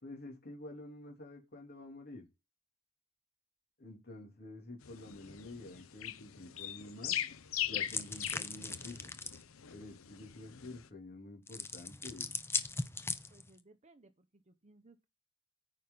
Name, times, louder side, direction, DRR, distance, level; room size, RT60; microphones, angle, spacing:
voice 1, 0.0-2.2 3.8-7.2 7.7-9.1 9.7-12.3, left 2 dB, 50° left, 3.2 m, -49 dB
sound 1, 4.8-10.9, left 11 dB, 75° left, 0.7 m, -41 dB
sound 2, 7.9-9.4 11.5-13.6, left 4 dB, 10° left, 0.5 m, -39 dB
voice 2, 13.3-15.1, right 2 dB, 30° right, 0.9 m, -62 dB
9.3 x 5.6 x 3.9 m
head